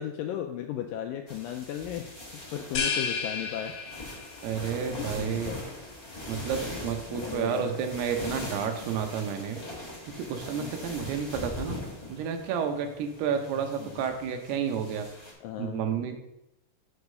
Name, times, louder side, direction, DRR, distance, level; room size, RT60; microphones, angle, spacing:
voice 1, 0.0-2.2 2.5-3.8 5.0-5.6 7.1-7.8 8.7-8.9 10.6-10.7 13.7-14.1 15.4-15.9, left 10 dB, 85° left, 4 dB, 2.0 m, -36 dB
sound 1, 1.3-15.3, left 1 dB, 50° left, 0.4 m, -41 dB
sound 2, 2.8-4.5, left 5 dB, 70° left, 2.5 m, -31 dB
voice 2, 4.4-5.5 6.3-9.6 10.1-11.8 12.1-15.1 15.6-16.2, right 7 dB, 90° right, 5 dB, 2.9 m, -31 dB
6.4 x 4.7 x 6.4 m, 0.87 s
omnidirectional pair, 4.5 m